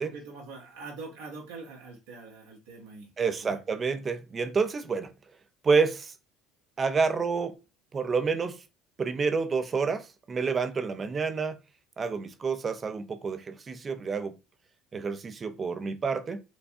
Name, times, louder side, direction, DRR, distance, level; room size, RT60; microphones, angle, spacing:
voice 1, 0.0-3.1 3.4-3.6, right 3 dB, 80° right, 1.2 m, -43 dB
voice 2, 3.2-5.1 5.6-6.1 6.8-7.6 7.9-8.6 9.0-11.6 12.0-14.4 14.9-16.4, right 5 dB, 35° right, 0.5 m, -28 dB
4.5 x 2.2 x 2.7 m
hypercardioid pair, 75°, 0 cm